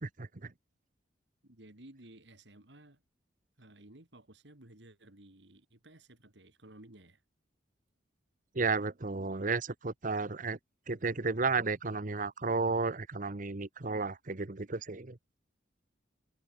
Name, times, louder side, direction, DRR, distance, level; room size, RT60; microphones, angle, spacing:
voice 1, 0.0-0.5 8.5-10.6 10.9-15.2, right 4 dB, 45° right, 1.0 m, -33 dB
voice 2, 1.4-3.0 3.6-7.2, right 1 dB, 70° right, 3.2 m, -55 dB
head